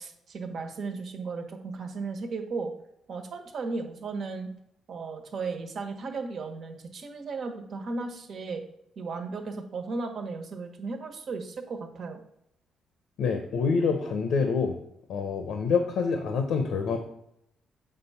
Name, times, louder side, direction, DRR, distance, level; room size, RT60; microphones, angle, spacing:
voice 1, 0.0-2.7 3.1-4.5 4.9-8.6 8.9-12.2, right 4 dB, 60° right, 4 dB, 1.4 m, -35 dB
voice 2, 13.2-14.8 15.1-17.0, left 5 dB, 80° left, 5 dB, 0.9 m, -26 dB
7.5 x 3.7 x 5.7 m, 0.77 s
cardioid pair, 90°, 0 cm